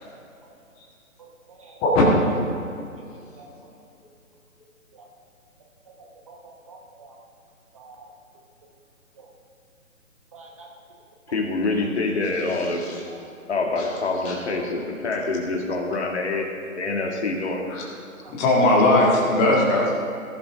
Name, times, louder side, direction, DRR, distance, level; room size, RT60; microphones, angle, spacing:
voice 1, 1.2-1.8 2.5-2.7 3.4-3.7 4.9-5.1 5.9-6.0 6.3-6.4 6.7-7.2 7.7-8.1 9.2-9.3 10.3-10.7 13.1-13.3 16.3-16.4 17.0-17.2 17.5-17.7 18.2-18.3 19.4-19.5, right 4 dB, 25° right, 0 dB, 1.0 m, -47 dB
voice 2, 11.3-12.9 13.5-16.5 16.8-17.6, left 3 dB, 50° left, 2 dB, 2.1 m, -26 dB
voice 3, 18.4-20.0, left 2 dB, 15° left, -3 dB, 1.8 m, -19 dB
19.5 x 11.5 x 3.6 m, 2.6 s
figure-of-eight pair, 145°, 43 cm